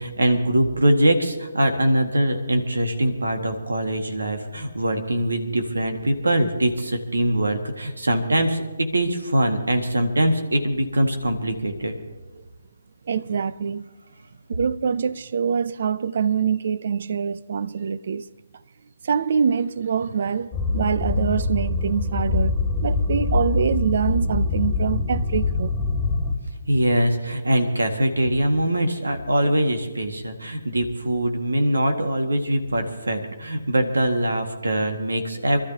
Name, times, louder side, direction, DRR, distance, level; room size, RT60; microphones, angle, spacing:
voice 1, 0.0-11.9 26.7-35.6, right 1 dB, 85° right, 1.9 m, -22 dB
voice 2, 13.1-13.8 14.5-18.2 19.0-22.6 22.8-25.7, right 6 dB, 55° right, 0.6 m, -24 dB
sound 1, 20.5-26.3, left 3 dB, 15° left, 1.9 m, -24 dB
26.0 x 13.0 x 2.9 m
figure-of-eight pair, 145°, 0 cm